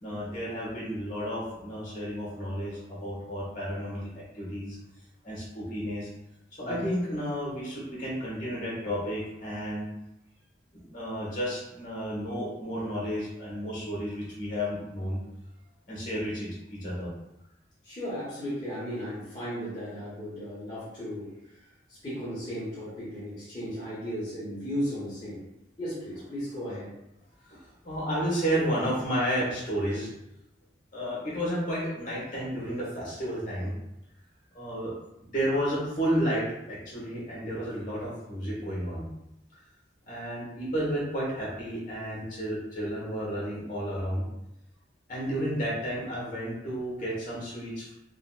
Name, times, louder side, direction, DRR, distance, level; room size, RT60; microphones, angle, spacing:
voice 1, 0.0-4.8 5.2-6.1 6.6-9.8 10.7-15.2 15.9-17.1 27.5-27.6 27.8-30.1 30.9-33.7 34.5-34.9 35.3-39.0 40.1-44.2 45.1-47.9, equal, 45° left, -5 dB, 1.2 m, -32 dB
voice 2, 17.8-21.6 21.9-25.5 25.8-26.9, equal, 25° left, -11 dB, 0.9 m, -35 dB
3.8 x 2.1 x 2.3 m, 0.88 s
head